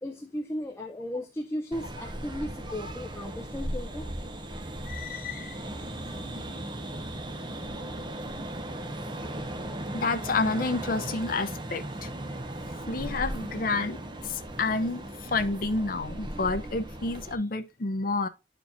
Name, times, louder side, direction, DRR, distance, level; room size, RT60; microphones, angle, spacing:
voice 1, 0.0-4.1 17.3-17.5, left 1 dB, 15° left, 0.6 m, -36 dB
sound 1, 1.7-17.4, right 1 dB, 25° right, 0.7 m, -37 dB
voice 2, 4.9-5.6 9.9-12.1 12.9-14.0 14.2-18.3, left 3 dB, 50° left, 0.7 m, -29 dB
10.0 x 4.5 x 2.7 m
head